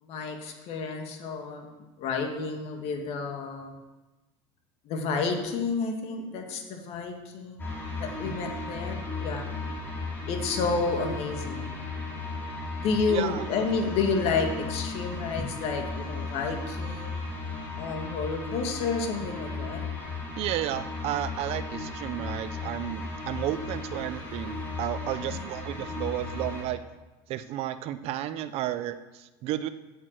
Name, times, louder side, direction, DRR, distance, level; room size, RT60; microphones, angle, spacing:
voice 1, 0.0-3.8 4.8-9.4 10.3-11.8 12.8-17.2 17.8-19.8 25.2-25.3, left 4 dB, 50° left, 4 dB, 2.0 m, -30 dB
sound 1, 7.6-26.6, left 3 dB, 15° left, 2.7 m, -35 dB
voice 2, 13.1-13.5 20.4-26.8 27.3-29.7, right 13 dB, 50° right, 13 dB, 0.6 m, -32 dB
9.0 x 8.4 x 7.6 m, 1.1 s
cardioid pair, 150°, 13 cm